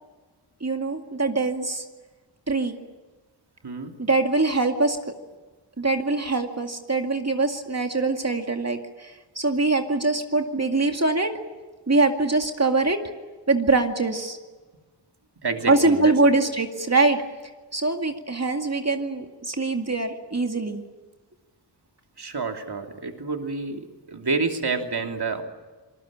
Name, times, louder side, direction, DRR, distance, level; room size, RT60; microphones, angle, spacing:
voice 1, 0.6-1.8 2.5-2.8 4.0-5.0 5.8-11.3 11.9-13.0 13.5-14.4 15.7-17.2 17.7-20.8, right 3 dB, 35° right, 4 dB, 2.2 m, -23 dB
voice 2, 3.6-4.0 15.4-16.1 22.2-25.4, right 4 dB, 60° right, 4 dB, 3.0 m, -28 dB
27.0 x 20.5 x 8.9 m, 1.3 s
wide cardioid pair, 60°, 43 cm